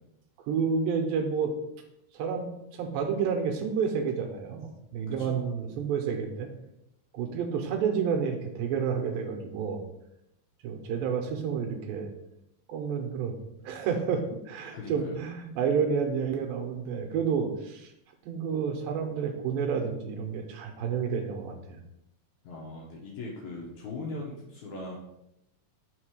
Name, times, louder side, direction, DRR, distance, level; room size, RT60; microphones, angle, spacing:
voice 1, 0.5-1.5 2.1-2.5 2.8-6.5 7.1-9.8 10.6-12.1 12.7-17.9 18.3-21.8, right 6 dB, 80° right, 3 dB, 2.4 m, -30 dB
voice 2, 5.1-5.5 14.7-15.2 22.4-25.0, left 2 dB, 70° left, -2 dB, 2.0 m, -40 dB
5.9 x 3.6 x 4.8 m, 0.84 s
omnidirectional pair, 4.2 m